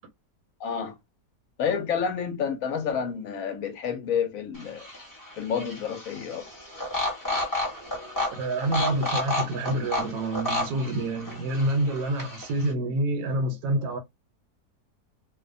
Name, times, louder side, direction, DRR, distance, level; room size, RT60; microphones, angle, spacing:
voice 1, 0.6-1.0 1.6-4.9 5.4-6.5, left 7 dB, 65° left, 0.9 m, -29 dB
sound 1, 4.5-12.7, left 2 dB, 20° left, 0.6 m, -32 dB
voice 2, 8.4-14.0, right 1 dB, 75° right, 1.1 m, -27 dB
2.6 x 2.1 x 2.4 m
omnidirectional pair, 1.7 m